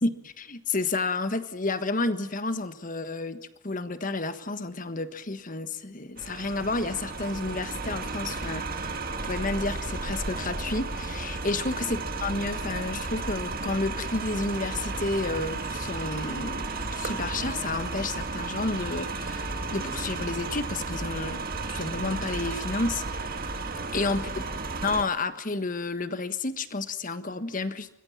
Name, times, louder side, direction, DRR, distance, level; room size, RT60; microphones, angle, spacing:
voice 1, 0.0-21.4 21.7-23.0 23.9-24.4 24.8-27.9, left 3 dB, 40° left, 11 dB, 1.5 m, -31 dB
sound 1, 6.2-25.0, right 3 dB, 50° right, 2.0 m, -33 dB
25.0 x 21.0 x 7.2 m, 0.81 s
head